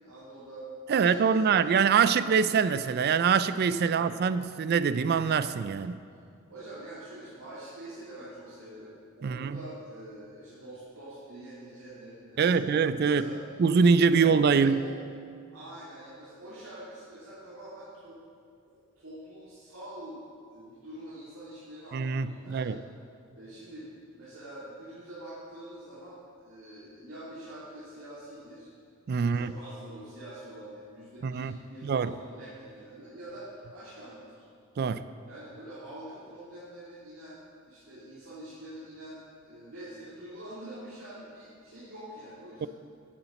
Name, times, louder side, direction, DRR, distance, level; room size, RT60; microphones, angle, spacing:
voice 1, 0.0-2.6 3.8-4.1 6.5-13.4 14.1-14.9 15.5-18.2 18.7-20.2 20.5-22.7 23.3-28.7 29.1-34.5 35.2-42.7, right 1 dB, 75° right, -11 dB, 3.1 m, -45 dB
voice 2, 0.9-6.0 9.2-9.6 12.4-13.3 13.6-14.9 21.9-22.8 29.1-29.5 31.2-31.5 31.8-32.1 34.8-35.1 42.6-42.7, right 6 dB, 50° right, 14 dB, 0.3 m, -24 dB
9.9 x 7.1 x 7.8 m, 2.3 s
head